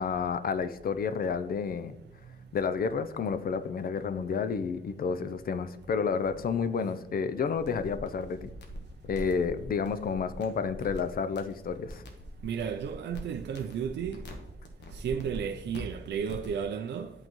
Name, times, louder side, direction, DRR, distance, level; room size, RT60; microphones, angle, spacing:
voice 1, 0.0-2.0 2.5-8.5 9.1-12.0, left 5 dB, 55° left, 0.4 m, -30 dB
sound 1, 7.5-16.6, equal, 75° left, 1.1 m, -44 dB
voice 2, 12.4-14.2 14.9-17.1, right 7 dB, 75° right, 0.4 m, -33 dB
10.5 x 3.9 x 3.0 m
wide cardioid pair, 145°, 18 cm